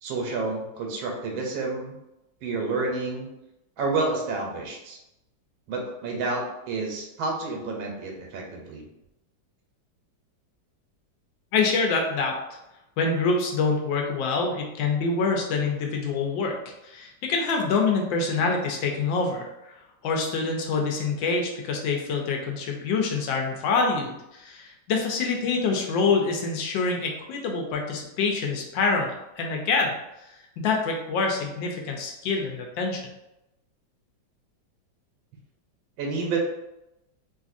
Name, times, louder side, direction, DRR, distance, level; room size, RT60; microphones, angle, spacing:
voice 1, 0.0-2.0 2.4-3.3 3.8-5.0 5.7-8.9 36.0-36.4, right 3 dB, 90° right, 0 dB, 1.4 m, -29 dB
voice 2, 11.5-12.4 13.0-16.6 16.8-33.0, left 4 dB, 80° left, 1 dB, 1.3 m, -26 dB
3.1 x 2.6 x 2.4 m, 0.90 s
omnidirectional pair, 2.1 m